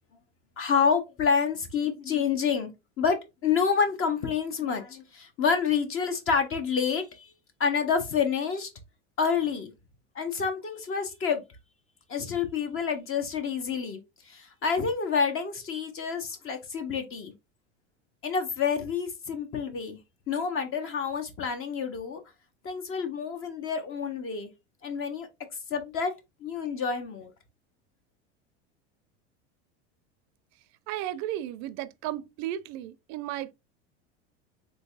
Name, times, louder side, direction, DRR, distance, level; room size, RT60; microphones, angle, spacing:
voice 1, 0.6-2.7 3.0-7.3 7.6-8.7 9.2-9.7 10.1-11.4 12.1-14.0 14.3-17.3 18.2-20.0 20.3-22.2 22.6-24.5 24.8-25.3 25.7-26.1 26.4-27.3, left 6 dB, 40° left, 0.9 m, -28 dB
voice 2, 30.9-33.5, right 13 dB, 50° right, 0.5 m, -34 dB
3.9 x 3.2 x 2.3 m
hypercardioid pair, 95°, 34 cm